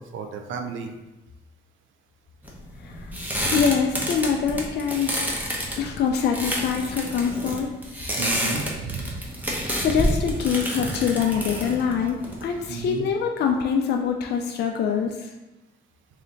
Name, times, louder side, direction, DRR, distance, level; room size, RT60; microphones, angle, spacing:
voice 1, 0.1-0.9 8.1-9.8 11.2-11.4 12.7-13.0, right 4 dB, 75° right, 5 dB, 0.6 m, -34 dB
sound 1, 2.4-12.8, equal, 10° right, 0.8 m, -29 dB
voice 2, 3.5-5.2 5.8-7.7 9.8-15.3, left 6 dB, 55° left, 2 dB, 0.4 m, -24 dB
3.2 x 2.8 x 3.8 m, 1.0 s
cardioid pair, 90°, 20 cm